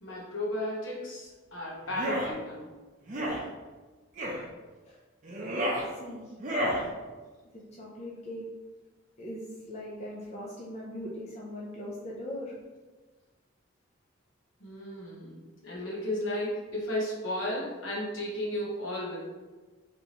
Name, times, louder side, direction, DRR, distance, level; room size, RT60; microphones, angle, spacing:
voice 1, 0.0-2.6 14.6-15.4 15.6-19.2, left 1 dB, 75° left, -4 dB, 1.0 m, -34 dB
sound 1, 1.9-2.3 3.1-3.4 4.2-4.4 5.2-5.8 6.4-6.8, equal, 40° right, 0.7 m, -30 dB
voice 2, 5.8-6.3 7.5-8.4 9.2-12.5, left 1 dB, 35° left, -4 dB, 0.5 m, -40 dB
3.4 x 2.9 x 2.9 m, 1.3 s
head